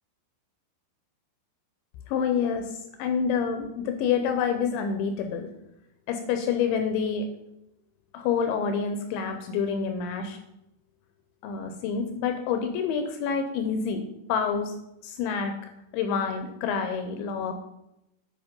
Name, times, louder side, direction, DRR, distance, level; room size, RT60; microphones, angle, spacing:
voice 1, 2.1-5.5 6.1-7.3 8.1-10.4 11.4-14.0 14.3-14.7 15.0-15.5 15.9-17.5, left 6 dB, 80° left, 6 dB, 2.7 m, -27 dB
9.6 x 5.4 x 5.2 m, 0.85 s
omnidirectional pair, 5.8 m